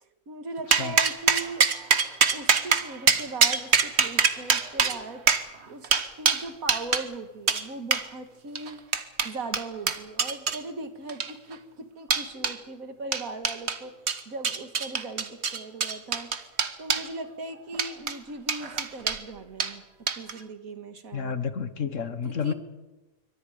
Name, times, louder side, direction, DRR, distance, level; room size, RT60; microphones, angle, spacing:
voice 1, 0.3-1.7 2.3-5.9 6.2-8.8 9.2-19.8 20.2-21.4 22.2-22.5, right 2 dB, 70° right, 7 dB, 2.3 m, -39 dB
sound 1, 0.7-7.1 7.5-7.6 7.9-8.1 8.6-10.6 11.1-11.5 12.1-12.6 13.1-13.8 14.1-17.1 17.7-18.2 18.5-19.2 19.6-19.7 20.1-20.4, right 6 dB, 50° right, 1.4 m, -24 dB
voice 2, 21.1-22.5, left 6 dB, 60° left, 11 dB, 1.6 m, -30 dB
27.0 x 24.0 x 5.2 m, 1.1 s
omnidirectional pair, 1.5 m